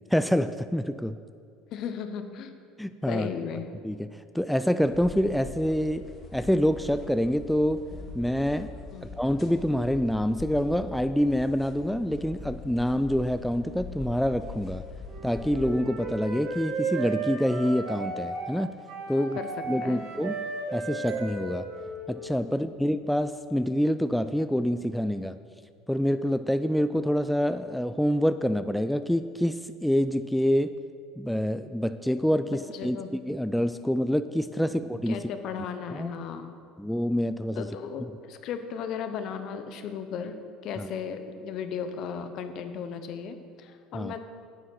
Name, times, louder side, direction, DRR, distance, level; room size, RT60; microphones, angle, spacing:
voice 1, 0.1-1.2 2.8-3.3 3.8-7.9 8.1-8.7 9.0-14.8 15.2-18.8 19.1-19.4 19.7-20.4 20.7-21.7 22.1-25.4 25.9-30.7 31.2-35.2 35.9-36.1 36.8-37.7 40.8-40.9 43.9-44.1, equal, ahead, 11 dB, 0.3 m, -26 dB
voice 2, 1.7-2.5 3.1-3.7 8.9-9.1 19.1-19.5 19.8-20.0 22.5-22.6 32.7-33.1 34.6-34.7 35.1-36.5 37.6-44.2, left 7 dB, 55° left, 9 dB, 0.9 m, -36 dB
sound 1, 4.8-15.8, left 3 dB, 35° left, 1.5 m, -42 dB
Wind instrument woodwind instrument, 15.0-22.5, right 3 dB, 70° right, 2.9 m, -35 dB
sound 2, 21.1-25.2, right 1 dB, 25° right, 2.0 m, -50 dB
9.6 x 8.1 x 5.6 m, 2.3 s
hypercardioid pair, 70°, 0 cm